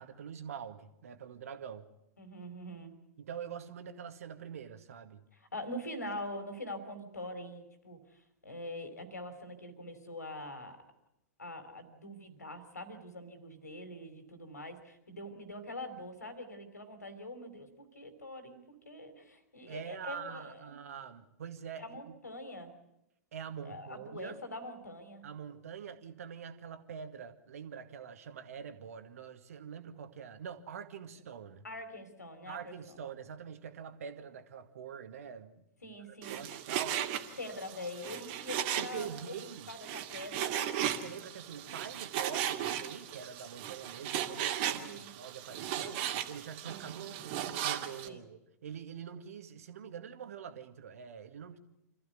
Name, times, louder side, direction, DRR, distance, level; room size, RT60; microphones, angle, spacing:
voice 1, 0.0-1.9 3.2-5.2 19.7-22.2 23.3-24.4 25.2-31.6 32.5-37.0 38.8-39.7 41.0-51.6, right 7 dB, 60° right, 9 dB, 2.1 m, -45 dB
voice 2, 2.2-3.0 5.3-10.8 11.4-20.8 21.8-22.8 23.6-25.2 31.6-33.0 35.8-36.6 37.4-39.3 39.7-40.6 44.7-45.1 48.0-48.2, left 1 dB, 80° left, 9 dB, 3.5 m, -44 dB
Frying (food), 36.2-48.1, right 10 dB, 45° right, 2.4 m, -37 dB
26.5 x 15.0 x 9.4 m, 0.85 s
figure-of-eight pair, 100°, 9 cm